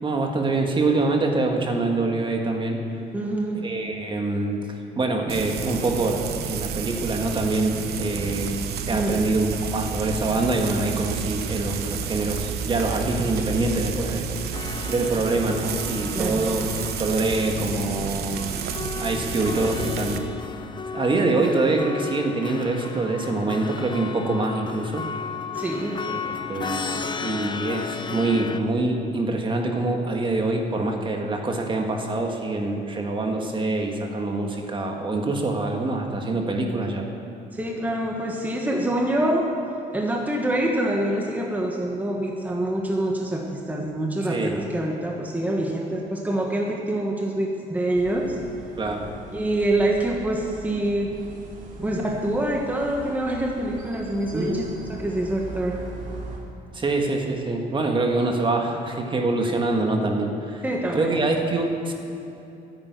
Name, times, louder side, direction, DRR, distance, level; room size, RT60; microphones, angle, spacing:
voice 1, 0.0-2.8 3.6-14.3 14.9-16.7 17.0-18.7 19.0-20.2 20.9-25.0 26.0-26.2 26.5-37.0 44.3-44.6 48.8-49.1 51.8-52.0 54.3-54.6 56.7-60.6 60.9-61.9, right 2 dB, 30° right, 2 dB, 1.6 m, -25 dB
voice 2, 3.1-3.6 8.9-9.2 16.1-16.5 25.5-26.0 37.5-39.5 39.9-48.4 49.3-51.2 51.8-54.6 54.9-55.8 60.6-61.2, right 1 dB, 10° right, -1 dB, 1.4 m, -25 dB
Frying (food), 5.3-20.2, right 7 dB, 70° right, 1.0 m, -31 dB
sound 1, 14.5-28.6, left 5 dB, 25° left, 0.7 m, -34 dB
sound 2, 47.9-56.4, right 2 dB, 50° right, 2.7 m, -41 dB
10.5 x 8.9 x 9.6 m, 2.8 s
cardioid pair, 110°, 17 cm